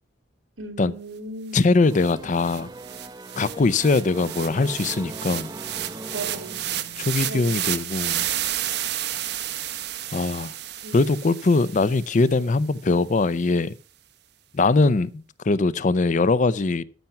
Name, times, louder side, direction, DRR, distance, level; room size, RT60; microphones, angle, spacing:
voice 1, 0.6-1.6 6.1-7.8 10.8-11.1, right 2 dB, 90° right, 2.4 m, -38 dB
voice 2, 1.5-2.7 3.4-5.5 7.0-8.3 10.1-10.5 10.9-13.7 14.5-16.8, left 3 dB, 40° left, 0.5 m, -21 dB
sound 1, 1.6-1.7 2.0-12.3, right 12 dB, 55° right, 0.8 m, -31 dB
sound 2, 1.8-7.5, right 2 dB, 20° right, 0.6 m, -40 dB
13.0 x 5.9 x 5.8 m
head